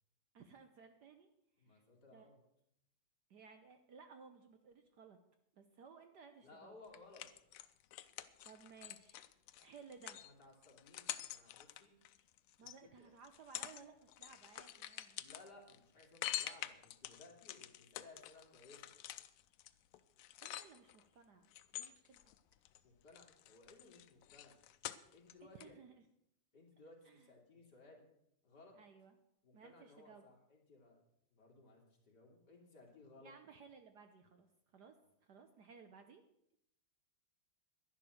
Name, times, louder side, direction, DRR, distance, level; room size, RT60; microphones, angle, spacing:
voice 1, 0.3-1.3 1.7-1.8 2.1-2.3 3.3-5.2 5.6-6.7 8.4-9.3 9.6-10.2 12.6-15.2 20.4-22.2 25.5-26.0 27.0-27.3 28.7-29.1 29.5-30.3 33.2-34.9 35.2-36.2, right 5 dB, 60° right, 7 dB, 1.3 m, -59 dB
voice 2, 1.6-2.4 6.4-7.3 10.2-12.0 12.6-13.1 15.1-18.9 22.7-24.6 25.1-25.8 26.5-28.0 28.4-28.7 29.4-31.0 31.3-33.3, left 3 dB, 50° left, 0 dB, 3.3 m, -61 dB
sound 1, 6.9-12.8 13.2-13.8 14.1-21.0 21.5-22.8 23.1-25.3 25.6-25.7, left 13 dB, 90° left, 1.6 m, -47 dB
11.5 x 11.0 x 6.4 m, 0.77 s
omnidirectional pair, 2.4 m